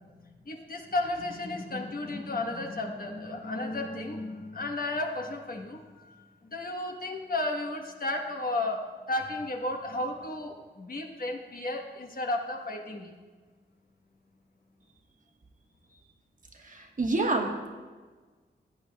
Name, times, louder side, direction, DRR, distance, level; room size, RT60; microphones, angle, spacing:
voice 1, 0.2-13.1, left 2 dB, 50° left, 2 dB, 1.2 m, -33 dB
voice 2, 16.5-17.7, right 2 dB, 45° right, 2 dB, 1.3 m, -28 dB
15.0 x 9.3 x 2.3 m, 1.4 s
wide cardioid pair, 75°, 19 cm